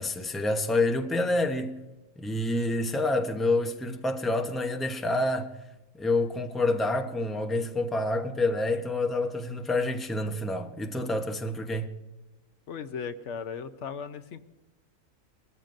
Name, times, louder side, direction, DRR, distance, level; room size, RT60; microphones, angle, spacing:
voice 1, 0.0-1.7 2.2-5.5 5.9-11.9, left 2 dB, ahead, 0.8 m, -28 dB
voice 2, 12.7-14.4, left 6 dB, 65° left, 1.0 m, -37 dB
20.5 x 14.0 x 2.6 m
omnidirectional pair, 1.4 m